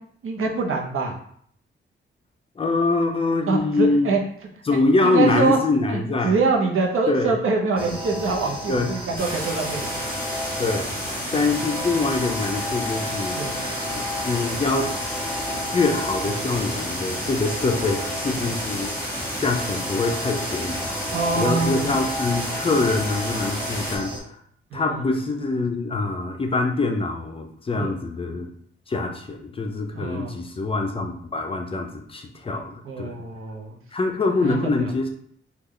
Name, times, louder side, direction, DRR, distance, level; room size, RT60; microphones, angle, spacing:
voice 1, 0.2-1.2 3.5-4.2 5.0-5.6 5.9-9.9 13.4-13.5 21.1-21.9 24.7-25.0 27.8-27.9 29.9-30.3 32.8-33.8 34.4-34.7, right 4 dB, 90° right, 0 dB, 0.7 m, -24 dB
voice 2, 2.6-4.1 4.6-6.3 7.1-7.4 8.7-8.9 10.6-10.9 11.3-13.4 13.9-14.9 15.7-18.9 19.2-20.9 21.3-24.4 24.7-28.5 28.9-33.1 33.9-35.1, left 3 dB, 25° left, 3 dB, 0.4 m, -24 dB
sound 1, 7.8-24.2, equal, 25° right, 0.6 m, -32 dB
sound 2, 9.2-24.0, equal, 10° left, 0.9 m, -32 dB
3.1 x 2.3 x 3.6 m, 0.63 s
wide cardioid pair, 175°, 21 cm